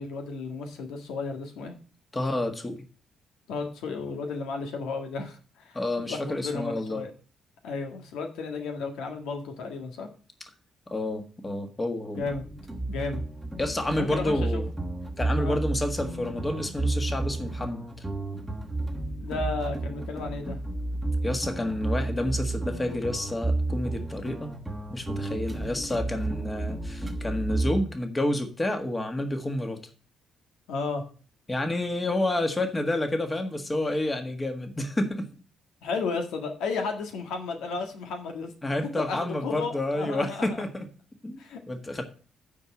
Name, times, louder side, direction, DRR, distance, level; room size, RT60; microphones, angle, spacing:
voice 1, 0.0-1.7 3.5-5.8 6.1-7.1 7.6-10.1 12.1-12.5 12.9-13.2 14.0-14.6 15.4-15.6 19.2-20.6 30.7-31.0 35.8-38.5 39.0-40.6 41.4-41.6, left 4 dB, 90° left, 4 dB, 1.7 m, -33 dB
voice 2, 2.1-2.8 5.7-7.0 10.9-12.2 13.6-14.7 15.2-17.8 21.2-24.5 24.9-29.8 31.5-35.3 38.6-40.9 41.2-41.4 41.7-42.0, left 1 dB, 20° left, 6 dB, 1.7 m, -29 dB
Double bass, 12.2-27.8, right 2 dB, 5° right, 1.3 m, -32 dB
9.2 x 4.7 x 7.2 m, 0.38 s
cardioid pair, 90°, 0 cm